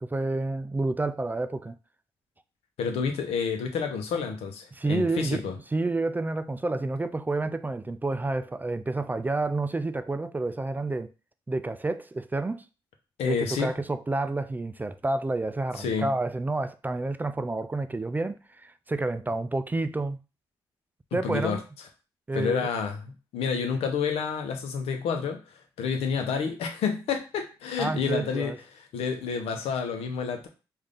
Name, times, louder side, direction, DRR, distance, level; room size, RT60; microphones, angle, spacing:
voice 1, 0.0-1.8 4.7-5.4 5.7-11.1 11.5-12.6 13.3-20.2 21.1-21.6 22.3-22.7 27.8-28.6, right 2 dB, 20° right, 0.3 m, -29 dB
voice 2, 2.8-5.5 13.2-13.7 15.8-16.1 21.1-21.6 22.3-28.5 28.9-30.5, left 6 dB, 85° left, 0.7 m, -29 dB
3.3 x 2.5 x 3.7 m
supercardioid pair, 60°, 10 cm